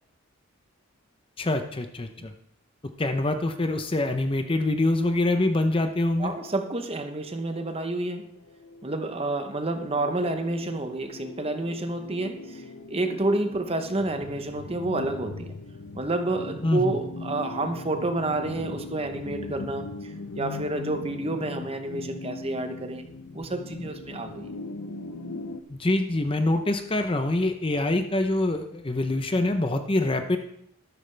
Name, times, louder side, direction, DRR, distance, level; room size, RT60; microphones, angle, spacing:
voice 1, 1.4-2.3 3.0-6.3 16.6-16.9 25.7-30.4, left 2 dB, 25° left, 7 dB, 0.7 m, -25 dB
voice 2, 6.2-8.3 8.8-15.6 15.9-23.1 23.3-24.5, right 2 dB, 25° right, 7 dB, 0.9 m, -29 dB
sound 1, 7.7-25.6, left 3 dB, 85° left, 0.8 m, -40 dB
13.0 x 12.0 x 3.3 m, 0.76 s
head